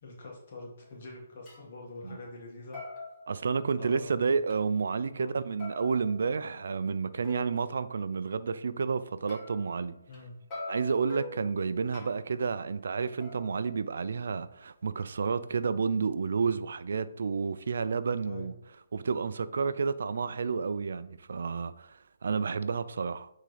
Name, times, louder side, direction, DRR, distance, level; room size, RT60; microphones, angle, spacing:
voice 1, 0.0-2.8 3.4-4.4 5.2-5.4 10.1-10.3 18.2-18.5, left 2 dB, 50° left, 1.9 m, -45 dB
sound 1, 0.9-1.0 1.5-1.6 2.1-2.4 2.7-4.0 4.5-4.6 5.6-7.6 9.3-10.2 10.5-12.4 13.2-14.3, left 2 dB, 20° left, 2.6 m, -45 dB
voice 2, 3.3-10.0 10.7-18.5 18.9-23.3, right 5 dB, 70° right, 0.5 m, -30 dB
9.0 x 3.7 x 3.4 m
hypercardioid pair, 155°, 0 cm